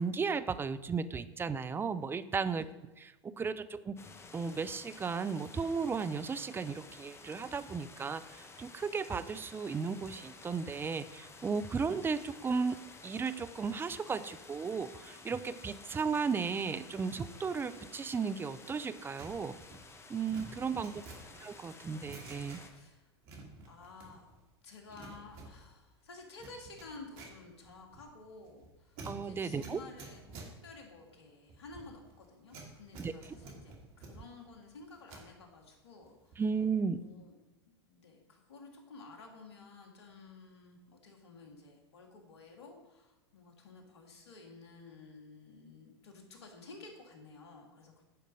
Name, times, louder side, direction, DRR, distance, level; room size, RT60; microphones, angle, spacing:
voice 1, 0.0-2.7 3.0-4.0 4.3-19.6 20.1-21.0 21.4-22.6 29.1-29.8 33.0-33.1 36.4-37.0, right 5 dB, 15° right, 13 dB, 0.5 m, -35 dB
sound 1, 4.0-22.7, left 3 dB, 20° left, 1.1 m, -53 dB
sound 2, 19.2-22.9 23.2-24.4 24.7-35.3 35.7-36.6 36.8-37.1, right 3 dB, 50° right, 2.3 m, -51 dB
voice 2, 20.7-21.3 22.7-23.1 23.6-24.3 24.6-36.4 37.0-37.4 37.9-48.0, left 3 dB, 75° left, 2 dB, 2.1 m, -53 dB
10.0 x 5.1 x 6.4 m, 1.1 s
hypercardioid pair, 95°, 14 cm